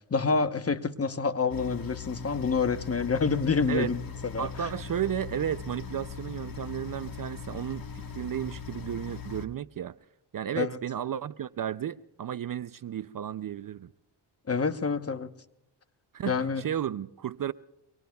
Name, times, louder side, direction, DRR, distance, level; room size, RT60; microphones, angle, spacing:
voice 1, 0.1-4.0 4.3-4.7 10.5-10.8 14.5-15.3 16.3-16.6, left 5 dB, 30° left, 1.0 m, -27 dB
sound 1, 1.5-9.5, left 6 dB, 45° left, 1.5 m, -40 dB
voice 2, 4.4-10.0 10.3-13.9 16.1-17.5, right 10 dB, 45° right, 0.5 m, -33 dB
25.0 x 23.5 x 2.3 m
cardioid pair, 65°, 48 cm